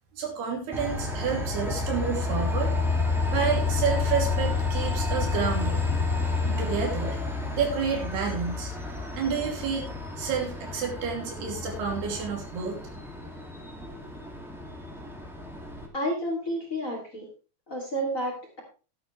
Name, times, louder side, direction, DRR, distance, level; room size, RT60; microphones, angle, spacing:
voice 1, 0.1-2.8 3.3-5.9 6.4-7.2 7.5-8.7 9.1-12.8, right 6 dB, 85° right, 1 dB, 4.9 m, -30 dB
Train, 0.7-15.9, left 3 dB, ahead, 1.0 m, -30 dB
voice 2, 15.9-17.3 17.7-18.6, equal, 25° left, 1 dB, 2.4 m, -30 dB
12.5 x 10.0 x 3.3 m, 0.35 s
omnidirectional pair, 4.5 m